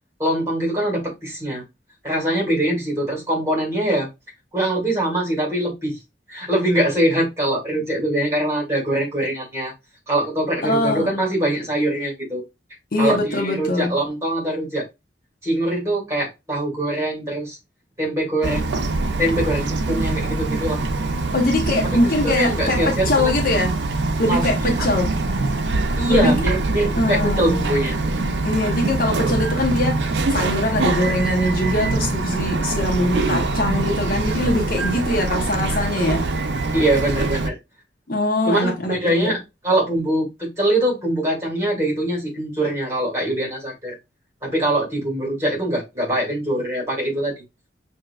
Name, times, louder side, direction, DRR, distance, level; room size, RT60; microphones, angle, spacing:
voice 1, 0.2-1.6 2.0-4.1 4.5-6.0 6.3-9.7 10.1-12.4 13.0-14.9 15.4-17.6 18.0-18.7 19.2-20.8 22.0-23.4 24.3-24.9 26.0-28.0 36.7-37.6 38.4-43.9 44.4-47.4, right 1 dB, 15° right, 2.2 m, -23 dB
voice 2, 10.6-11.2 12.9-14.0 21.3-23.8 24.2-25.2 26.1-26.3 26.9-27.7 28.4-36.3 38.1-39.4, left 1 dB, 50° left, 0.8 m, -22 dB
Bird vocalization bird call bird song, 18.4-37.5, right 3 dB, 75° right, 0.5 m, -23 dB
5.7 x 2.8 x 2.3 m
head